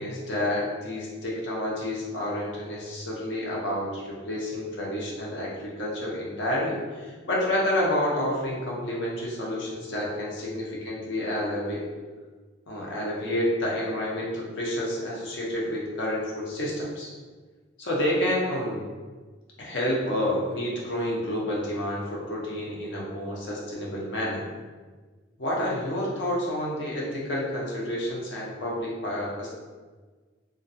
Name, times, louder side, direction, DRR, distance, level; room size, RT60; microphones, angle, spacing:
voice 1, 0.0-11.8 12.7-17.1 17.8-18.8 19.6-24.4 25.4-29.5, left 1 dB, 65° left, -4 dB, 0.6 m, -29 dB
2.4 x 2.2 x 2.6 m, 1.4 s
head